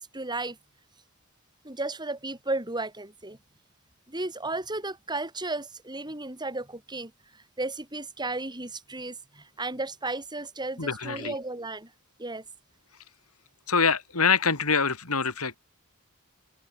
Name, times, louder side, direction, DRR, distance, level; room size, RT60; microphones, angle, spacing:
voice 1, 0.1-0.6 1.6-3.4 4.1-11.9 12.2-12.4, right 2 dB, 20° right, 6.4 m, -34 dB
voice 2, 10.8-11.3 13.7-15.6, left 5 dB, 80° left, 4.7 m, -25 dB
open air
head